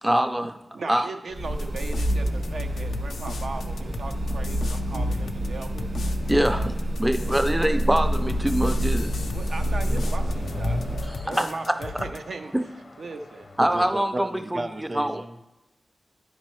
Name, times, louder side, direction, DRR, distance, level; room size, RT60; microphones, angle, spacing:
voice 1, 0.0-0.5 0.9-1.1 6.3-6.7 7.0-9.1 11.1-11.5 11.9-12.0 13.6-14.6 14.9-15.2, right 1 dB, 10° right, 8 dB, 0.4 m, -24 dB
voice 2, 0.7-5.8 6.5-6.8 7.1-7.8 9.3-10.8 11.2-12.5 13.0-13.5, right 3 dB, 85° right, 4 dB, 0.5 m, -38 dB
sound 1, 1.3-11.1, equal, 70° right, 2.2 m, -27 dB
sound 2, 1.6-12.2, left 4 dB, 90° left, 0.4 m, -39 dB
Car passing by / Accelerating revving vroom, 7.9-13.9, left 2 dB, 55° left, 0.7 m, -38 dB
voice 3, 13.6-15.4, right 1 dB, 40° right, 6 dB, 0.7 m, -34 dB
10.0 x 5.3 x 3.1 m, 0.95 s
cardioid pair, 60°, 0 cm